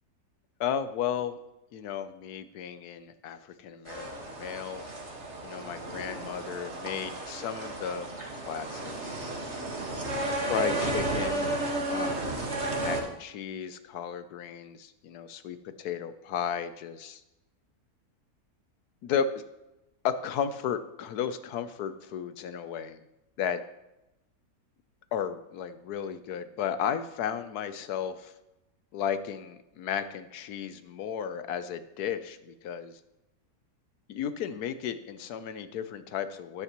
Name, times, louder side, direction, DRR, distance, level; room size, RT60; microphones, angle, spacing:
voice 1, 0.6-1.4 1.7-4.9 5.4-9.5 10.4-11.6 11.9-12.4 12.8-17.2 19.0-19.2 20.0-23.0 23.4-23.6 25.1-28.3 28.9-33.0 34.1-36.6, left 8 dB, 80° left, 11 dB, 1.2 m, -34 dB
sound 1, 3.9-13.0, right 2 dB, 45° right, 1.9 m, -33 dB
13.0 x 10.0 x 3.0 m, 0.94 s
omnidirectional pair, 1.6 m